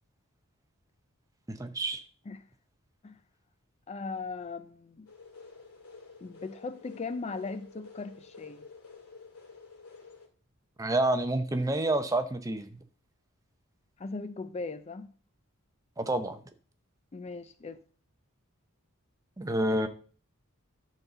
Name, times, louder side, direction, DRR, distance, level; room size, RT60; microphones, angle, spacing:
voice 1, 1.5-2.0 10.8-12.8 16.0-16.4 19.4-19.9, right 1 dB, 15° right, 0.7 m, -28 dB
voice 2, 3.9-5.1 6.2-8.6 14.0-15.1 17.1-17.8, left 4 dB, 30° left, 0.4 m, -38 dB
sound 1, 5.1-10.3, left 4 dB, 85° left, 2.4 m, -51 dB
10.5 x 4.0 x 6.8 m
head